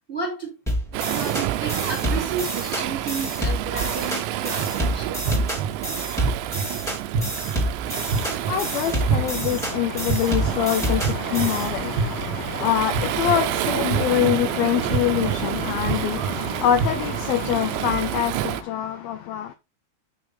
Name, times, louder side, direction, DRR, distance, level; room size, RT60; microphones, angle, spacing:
voice 1, 0.1-0.6 1.1-5.2, right 4 dB, 15° right, 2.2 m, -32 dB
sound 1, 0.7-11.7, equal, ahead, 1.6 m, -28 dB
Waves surf, 0.9-18.6, right 14 dB, 85° right, 2.9 m, -29 dB
sound 2, 4.5-4.7 5.2-5.7 6.2-6.6 7.1-7.5 8.1-8.5 9.1-9.5 10.1-10.5 11.0-11.5 12.0-12.4 12.9-13.3 13.9-14.3 14.9-15.3 15.8-16.3 16.8-17.2, right 5 dB, 55° right, 2.5 m, -25 dB
voice 2, 8.5-19.5, left 11 dB, 80° left, 2.2 m, -25 dB
9.2 x 6.3 x 3.4 m
omnidirectional pair, 5.3 m